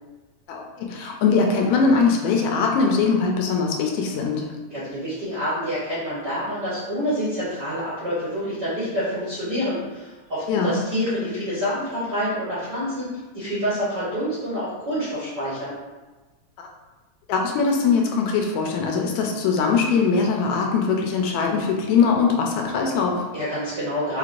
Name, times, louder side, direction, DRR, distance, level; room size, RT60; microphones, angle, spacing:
voice 1, 0.5-4.5 10.5-10.8 16.6-16.7 17.3-23.3, left 5 dB, 80° left, 1 dB, 1.9 m, -21 dB
voice 2, 4.7-13.1 13.3-15.7 23.3-24.2, equal, 65° right, -11 dB, 1.0 m, -27 dB
4.8 x 3.1 x 2.5 m, 1.2 s
omnidirectional pair, 3.4 m